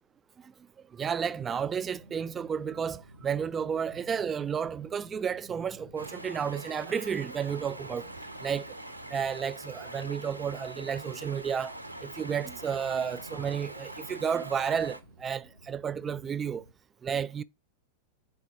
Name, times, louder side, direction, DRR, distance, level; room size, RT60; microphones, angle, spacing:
voice 1, 0.9-8.1 8.4-8.7 9.1-11.7 12.0-16.6 17.0-17.4, right 7 dB, 20° right, 0.3 m, -32 dB
sound 1, 1.2-16.7, right 1 dB, 90° left, 0.9 m, -53 dB
Stream, 5.9-15.0, right 1 dB, 85° right, 0.6 m, -43 dB
4.6 x 4.1 x 5.8 m
figure-of-eight pair, 90°, 0 cm